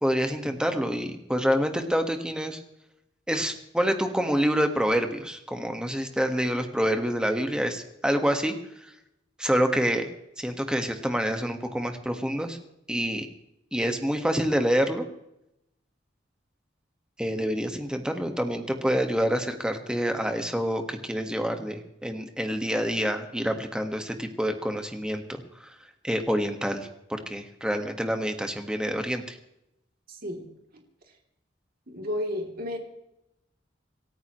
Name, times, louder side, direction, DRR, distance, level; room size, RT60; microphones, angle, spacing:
voice 1, 0.0-2.6 3.3-8.5 8.8-8.9 9.4-10.0 10.4-12.6 12.9-13.3 13.7-15.1 17.2-25.7 26.0-29.4, equal, 5° right, 5 dB, 1.6 m, -27 dB
voice 2, 30.1-30.4 31.9-32.8, left 1 dB, 55° right, 1 dB, 3.2 m, -32 dB
27.5 x 13.5 x 3.2 m, 0.84 s
head